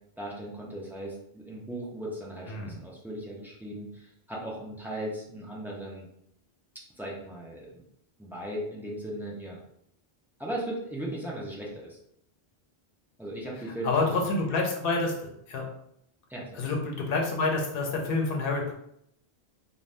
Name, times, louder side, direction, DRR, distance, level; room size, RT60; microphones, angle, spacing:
voice 1, 0.2-6.1 7.0-7.8 8.2-9.6 10.4-12.0 13.2-14.1 16.3-16.7, right 1 dB, 5° right, -5 dB, 0.3 m, -37 dB
voice 2, 13.8-15.7 16.5-18.7, left 3 dB, 65° left, 1 dB, 0.8 m, -28 dB
2.6 x 2.2 x 3.2 m, 0.74 s
omnidirectional pair, 1.1 m